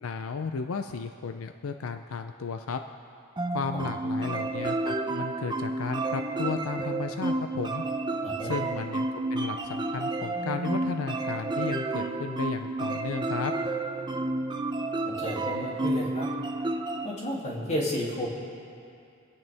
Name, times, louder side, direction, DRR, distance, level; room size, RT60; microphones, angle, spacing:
voice 1, 0.0-2.8 3.5-7.8 8.4-13.5, left 5 dB, 85° left, 7 dB, 0.5 m, -34 dB
sound 1, 3.4-17.1, right 2 dB, 20° right, 0.6 m, -31 dB
voice 2, 8.2-8.5 15.0-16.3 17.0-18.3, left 1 dB, 35° left, -4 dB, 2.7 m, -32 dB
27.0 x 9.4 x 3.5 m, 2.5 s
head